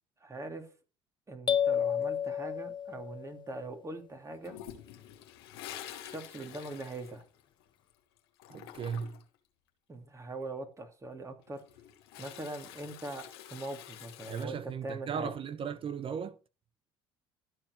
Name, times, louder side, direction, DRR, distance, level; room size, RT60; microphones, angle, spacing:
voice 1, 0.2-0.7 1.3-4.6 6.0-7.2 9.9-11.6 12.2-15.3, right 2 dB, 25° right, 2.8 m, -42 dB
sound 1, 1.5-3.4, left 8 dB, 40° left, 0.6 m, -30 dB
Toilet flush, 4.4-7.9 8.2-9.4 11.4-14.5, left 11 dB, 90° left, 1.7 m, -48 dB
voice 2, 8.5-9.2 14.3-16.4, right 7 dB, 45° right, 1.0 m, -36 dB
13.0 x 4.6 x 6.3 m
supercardioid pair, 70°, 13 cm